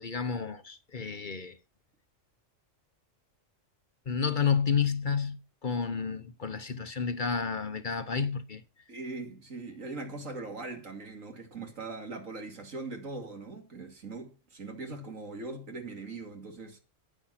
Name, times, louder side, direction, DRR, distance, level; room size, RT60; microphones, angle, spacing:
voice 1, 0.0-1.6 4.1-8.6, left 6 dB, 45° left, 1.0 m, -30 dB
voice 2, 8.9-16.8, right 3 dB, 85° right, 2.7 m, -41 dB
10.0 x 9.3 x 5.7 m
omnidirectional pair, 1.3 m